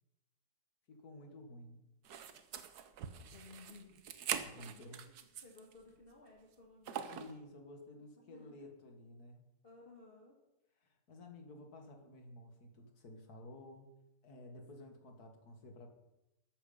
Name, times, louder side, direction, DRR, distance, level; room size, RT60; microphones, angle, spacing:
voice 1, 0.9-1.8 4.3-5.1 7.1-9.4 10.8-13.9 14.2-15.9, left 1 dB, 80° left, 4 dB, 2.3 m, -53 dB
sound 1, 2.0-5.7 6.1-6.2 6.8-7.4, right 8 dB, 85° right, 1.4 m, -43 dB
voice 2, 3.2-4.1 4.9-7.2 8.0-8.5 9.6-10.4, left 3 dB, 35° left, -2 dB, 1.8 m, -58 dB
13.0 x 8.6 x 5.5 m, 0.92 s
omnidirectional pair, 1.6 m